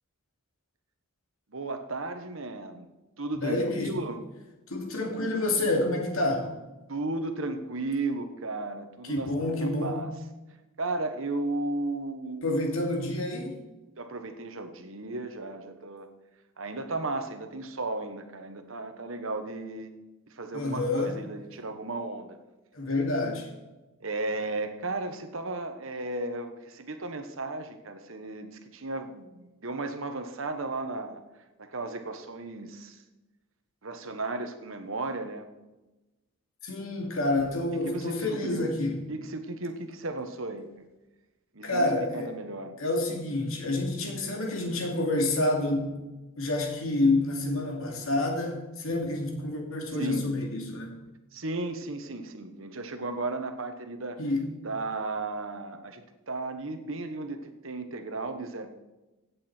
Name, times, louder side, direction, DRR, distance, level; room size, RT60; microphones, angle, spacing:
voice 1, 1.5-2.9 3.2-4.2 6.9-9.3 9.6-10.1 10.8-12.5 14.0-16.1 16.6-19.9 20.3-22.4 24.0-31.2 31.6-33.0 33.8-35.5 37.8-38.7 39.1-40.8 41.5-41.9 42.1-42.7 50.0-50.3 51.3-54.2 54.6-58.7, right 2 dB, 65° right, 7 dB, 1.2 m, -35 dB
voice 2, 3.4-3.9 4.7-6.5 9.0-10.0 12.4-13.6 20.5-21.1 22.7-23.5 36.6-39.0 41.6-42.3 42.8-46.0 46.4-51.0 54.2-54.4, left 2 dB, 70° left, 1 dB, 2.6 m, -28 dB
16.0 x 8.4 x 4.5 m, 1.1 s
head